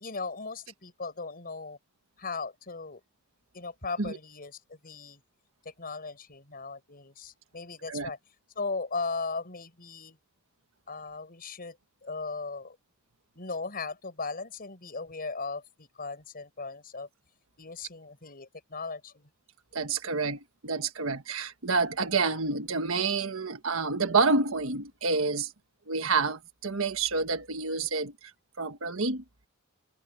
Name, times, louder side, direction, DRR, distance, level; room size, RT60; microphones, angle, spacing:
voice 1, 0.0-1.8 2.2-3.0 3.5-5.2 5.6-8.2 8.6-10.2 10.9-11.8 12.0-12.8 13.3-17.1 17.6-19.3, left 4 dB, 45° left, 6.0 m, -37 dB
voice 2, 19.7-25.5 25.9-28.3 28.6-29.2, right 4 dB, 75° right, 1.5 m, -28 dB
head